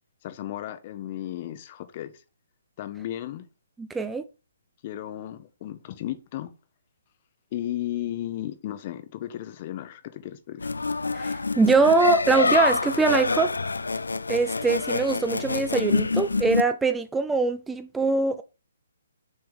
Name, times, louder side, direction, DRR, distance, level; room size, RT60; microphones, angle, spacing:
voice 1, 0.2-2.2 2.8-3.5 4.8-6.5 7.5-10.7, left 12 dB, 35° left, 0.7 m, -34 dB
voice 2, 3.8-4.2 11.1-13.5 14.3-18.4, right 4 dB, 5° right, 0.3 m, -23 dB
sound 1, 10.6-16.6, left 3 dB, 80° left, 0.3 m, -26 dB
6.3 x 3.5 x 5.1 m
figure-of-eight pair, 140°, 0 cm